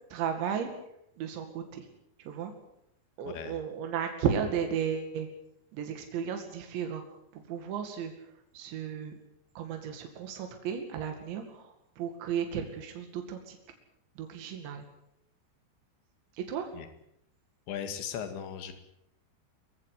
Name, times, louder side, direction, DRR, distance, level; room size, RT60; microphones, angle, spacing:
voice 1, 0.1-0.7 1.2-1.9 2.2-2.5 3.2-5.3 5.7-9.1 9.6-13.6 14.2-14.9 16.3-16.7, right 7 dB, 80° right, 5 dB, 4.6 m, -34 dB
voice 2, 3.3-3.6 16.7-16.9 17.7-18.7, left 8 dB, 80° left, 8 dB, 4.4 m, -37 dB
24.5 x 15.0 x 9.5 m, 0.77 s
omnidirectional pair, 5.1 m